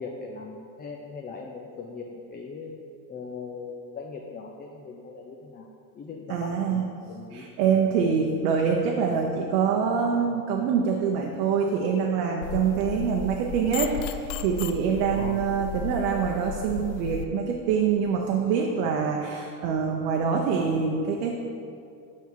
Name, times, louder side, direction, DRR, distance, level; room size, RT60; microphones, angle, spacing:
voice 1, 0.0-2.8 3.1-5.7 5.9-7.5 15.0-15.4, left 4 dB, 20° left, 1 dB, 0.4 m, -39 dB
voice 2, 6.3-6.8 7.3-21.3, right 6 dB, 85° right, 1 dB, 0.8 m, -25 dB
sound 1, 12.4-17.3, left 7 dB, 70° left, 0.6 m, -35 dB
5.9 x 5.5 x 4.5 m, 2.5 s
supercardioid pair, 105°, 48 cm